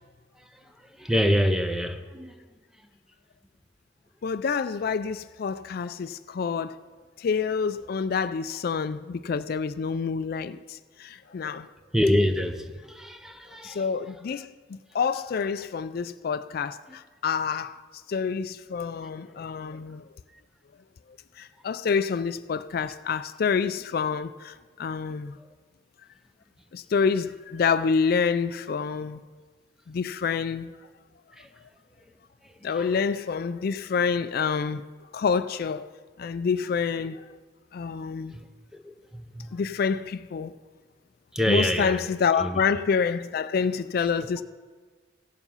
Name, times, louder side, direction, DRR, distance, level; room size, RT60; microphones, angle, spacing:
voice 1, 1.0-2.3 11.9-13.8 31.4-31.5 32.7-32.8 38.7-39.5 41.3-42.0 42.4-42.6, equal, 5° right, 0.6 m, -26 dB
voice 2, 4.2-6.8 7.2-11.7 13.6-17.8 18.1-20.0 21.4-25.4 26.7-29.2 29.9-30.7 32.6-34.8 35.1-35.9 36.2-37.3 37.7-38.4 39.5-40.6 41.5-44.4, left 5 dB, 55° left, 0.3 m, -27 dB
15.5 x 7.1 x 5.6 m
head